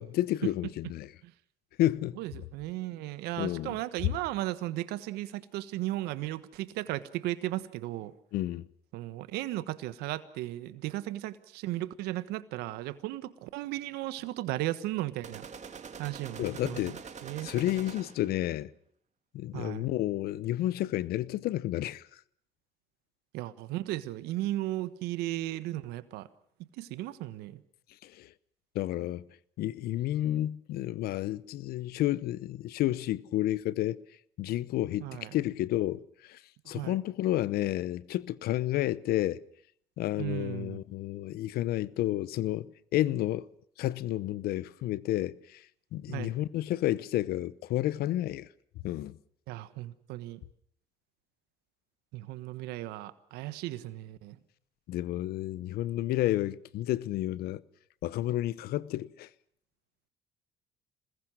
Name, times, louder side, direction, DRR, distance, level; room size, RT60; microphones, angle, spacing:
voice 1, 0.0-1.1 1.8-2.2 3.4-3.8 8.3-8.7 16.4-16.9 17.4-18.7 19.3-22.0 28.0-28.3 28.7-29.2 29.6-34.0 34.4-36.4 36.7-39.4 40.0-43.5 43.8-45.6 45.9-48.5 48.8-49.2 54.9-57.6 58.0-59.3, left 14 dB, 70° left, 0.9 m, -31 dB
voice 2, 2.2-8.1 8.9-15.5 16.0-16.8 17.2-17.5 19.5-19.9 23.3-26.3 26.8-27.6 35.0-35.3 36.7-37.0 40.2-40.8 46.1-46.3 49.5-50.4 52.1-54.4, right 16 dB, 80° right, 1.3 m, -35 dB
sound 1, 15.2-18.4, right 6 dB, 45° right, 2.6 m, -45 dB
27.0 x 20.5 x 6.2 m
hypercardioid pair, 60°, 16 cm